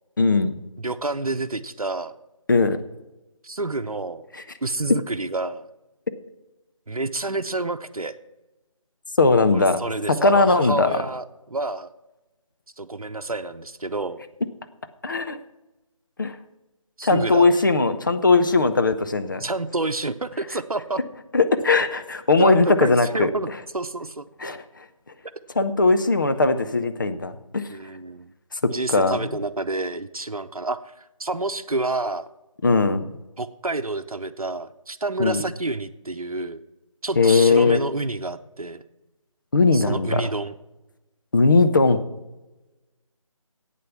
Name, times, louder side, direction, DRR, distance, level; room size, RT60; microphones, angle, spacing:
voice 1, 0.2-0.5 2.5-2.8 9.2-9.8 10.1-11.0 15.0-15.4 16.2-16.4 17.0-19.4 21.3-23.3 24.4-24.6 25.6-27.7 28.6-29.3 32.6-33.1 35.2-35.4 37.2-37.8 39.5-40.2 41.3-42.0, left 3 dB, 35° left, 8 dB, 0.6 m, -19 dB
voice 2, 0.8-2.1 3.4-4.2 4.6-5.7 6.9-8.1 9.5-11.9 12.8-14.2 17.0-17.6 18.7-18.8 19.4-21.0 22.4-23.5 23.7-24.3 27.7-28.3 28.7-32.3 33.4-36.6 37.0-38.8 39.7-40.5, right 2 dB, 90° right, 8 dB, 0.8 m, -29 dB
10.5 x 8.5 x 5.9 m, 1.0 s
figure-of-eight pair, 160°, 18 cm